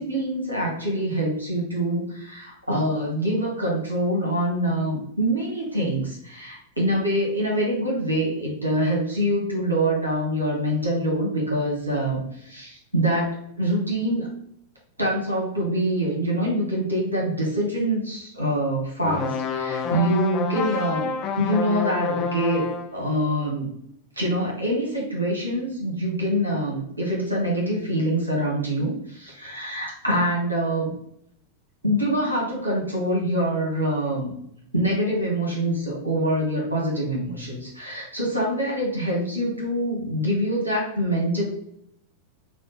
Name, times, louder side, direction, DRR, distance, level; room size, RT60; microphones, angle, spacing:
voice 1, 0.0-14.3 15.0-21.1 21.4-23.7 24.2-30.9 31.8-34.3 34.7-41.4, right 1 dB, 85° right, -3 dB, 1.2 m, -25 dB
sound 1, 19.0-23.0, left 4 dB, 35° left, 0.5 m, -28 dB
4.9 x 2.3 x 3.9 m, 0.73 s
figure-of-eight pair, 90°, 0 cm